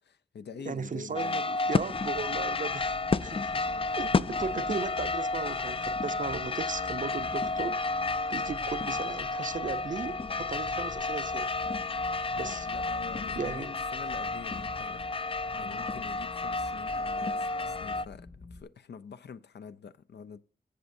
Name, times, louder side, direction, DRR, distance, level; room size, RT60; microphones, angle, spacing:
voice 1, 0.0-1.6 2.3-2.4 3.2-3.4 3.7-3.9 12.3-20.4, left 6 dB, 85° left, 0.6 m, -46 dB
voice 2, 0.6-2.9 3.2-3.7 4.0-7.8 8.3-11.5 12.4-12.7 13.4-13.7, right 5 dB, 50° right, 0.6 m, -36 dB
sound 1, 1.2-18.1, left 3 dB, 35° left, 0.4 m, -31 dB
sound 2, 1.9-18.6, left 3 dB, 60° left, 2.7 m, -48 dB
15.0 x 6.4 x 2.6 m
wide cardioid pair, 105°, 17 cm